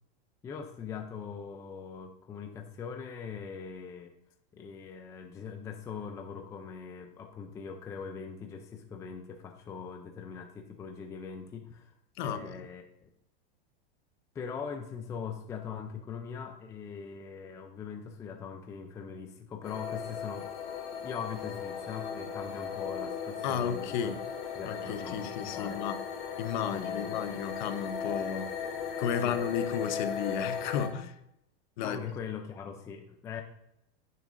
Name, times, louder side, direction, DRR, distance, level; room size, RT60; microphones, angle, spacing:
voice 1, 0.4-4.1 4.5-11.9 12.2-12.9 14.3-20.5 21.0-24.2 24.6-25.8 26.7-27.2 29.2-29.4 31.8-33.4, left 6 dB, 10° left, 4 dB, 0.5 m, -41 dB
voice 2, 12.2-12.5 23.4-24.2 24.6-26.0 26.4-28.5 29.0-31.1 31.8-32.0, left 8 dB, 50° left, 10 dB, 0.9 m, -33 dB
sound 1, 19.6-30.9, left 7 dB, 75° left, 3.0 m, -37 dB
10.5 x 9.5 x 2.6 m, 0.79 s
supercardioid pair, 160°, 29 cm